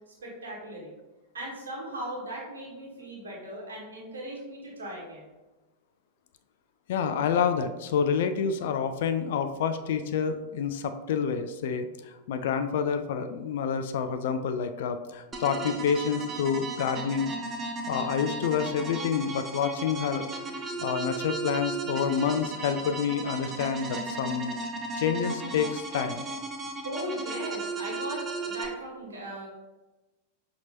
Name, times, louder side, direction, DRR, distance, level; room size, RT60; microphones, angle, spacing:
voice 1, 0.1-0.9 1.3-5.3 26.8-29.5, right 1 dB, 70° right, -3 dB, 1.0 m, -38 dB
voice 2, 6.9-17.3 17.9-20.3 20.8-24.6 25.0-26.3, left 7 dB, 55° left, 9 dB, 0.3 m, -28 dB
sound 1, 15.3-28.7, right 3 dB, 20° right, 0.6 m, -35 dB
5.8 x 2.9 x 2.6 m, 1.1 s
figure-of-eight pair, 90°, 0 cm